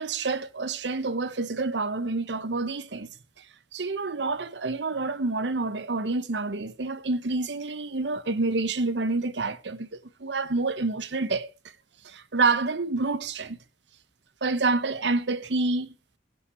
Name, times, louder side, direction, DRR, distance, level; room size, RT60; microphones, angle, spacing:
voice 1, 0.0-3.1 3.4-3.5 3.7-11.5 12.0-13.6 14.4-15.9, right 3 dB, 80° right, 1.0 m, -28 dB
13.0 x 12.0 x 4.8 m
head